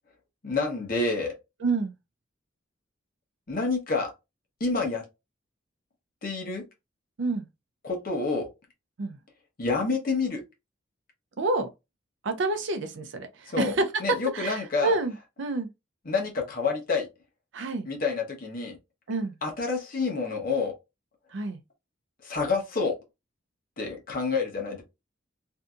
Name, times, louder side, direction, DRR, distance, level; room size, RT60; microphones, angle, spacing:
voice 1, 0.4-1.3 3.5-4.1 4.6-5.0 6.2-6.6 7.8-8.5 9.6-10.4 13.5-13.7 14.0-15.0 16.1-17.1 17.8-18.8 19.4-20.7 22.2-22.9 23.8-24.8, left 4 dB, 45° left, 0.8 m, -28 dB
voice 2, 1.6-1.9 7.2-7.4 9.0-9.2 11.4-11.7 12.2-13.8 14.3-15.7 17.5-17.9 19.1-19.3 21.3-21.6, right 3 dB, 65° right, 0.5 m, -28 dB
2.7 x 2.5 x 2.3 m
head